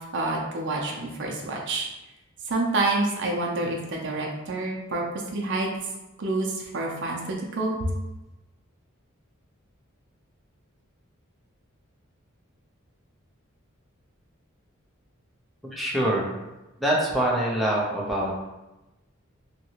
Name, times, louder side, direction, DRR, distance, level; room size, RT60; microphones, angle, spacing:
voice 1, 0.1-1.9 2.5-5.0 5.3-5.8 6.2-7.9, right 2 dB, 60° right, -1 dB, 0.6 m, -28 dB
voice 2, 15.7-16.3 16.8-18.5, right 1 dB, ahead, -5 dB, 0.6 m, -25 dB
2.9 x 2.6 x 2.8 m, 1.0 s
head